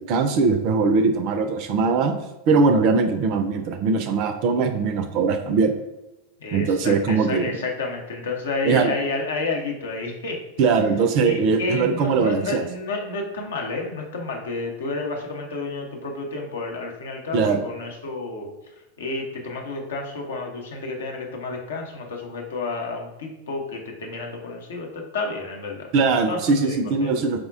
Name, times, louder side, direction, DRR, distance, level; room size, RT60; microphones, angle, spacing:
voice 1, 0.0-2.2 2.5-5.7 6.5-7.6 8.7-8.9 10.6-12.6 17.3-17.6 25.9-27.4, right 4 dB, 45° right, 7 dB, 0.3 m, -21 dB
voice 2, 6.4-10.4 11.2-18.5 19.0-25.9 26.3-27.1, left 3 dB, 70° left, 1 dB, 0.7 m, -30 dB
4.6 x 2.1 x 2.4 m, 0.98 s
figure-of-eight pair, 90°, 0 cm